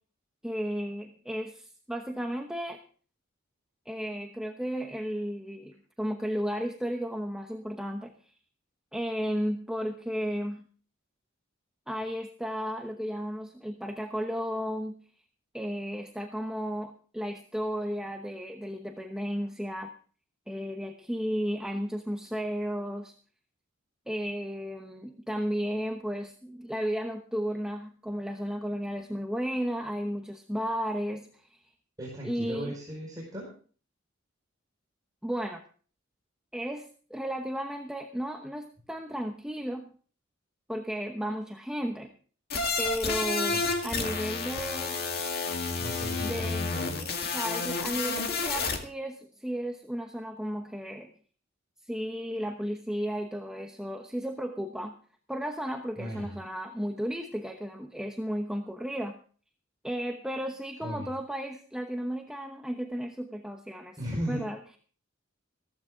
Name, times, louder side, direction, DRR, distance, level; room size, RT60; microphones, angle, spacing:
voice 1, 0.4-2.8 3.8-8.3 8.9-10.6 11.9-15.1 15.5-19.9 20.5-23.1 24.1-31.6 32.2-32.7 35.2-35.6 36.5-39.9 40.7-42.1 42.8-45.0 46.2-46.7 47.3-51.1 51.9-55.0 55.3-59.2 59.8-64.0 64.3-64.8, equal, 5° right, 3 dB, 0.9 m, -34 dB
voice 2, 32.0-33.5 43.5-43.7 45.8-47.1 56.0-56.3 60.8-61.1 64.0-64.4, equal, 20° right, -4 dB, 4.8 m, -37 dB
sound 1, 42.5-48.8, left 4 dB, 50° left, 2.0 m, -30 dB
15.5 x 14.5 x 3.7 m, 0.41 s
head